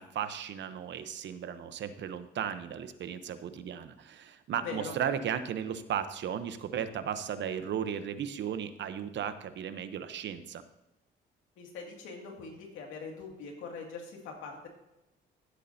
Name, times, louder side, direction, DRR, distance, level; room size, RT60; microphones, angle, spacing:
voice 1, 0.0-10.6, right 8 dB, 65° right, 11 dB, 0.8 m, -35 dB
voice 2, 4.6-4.9 11.6-14.7, left 4 dB, 90° left, 1 dB, 2.3 m, -42 dB
15.5 x 8.3 x 2.8 m, 0.94 s
cardioid pair, 90°, 20 cm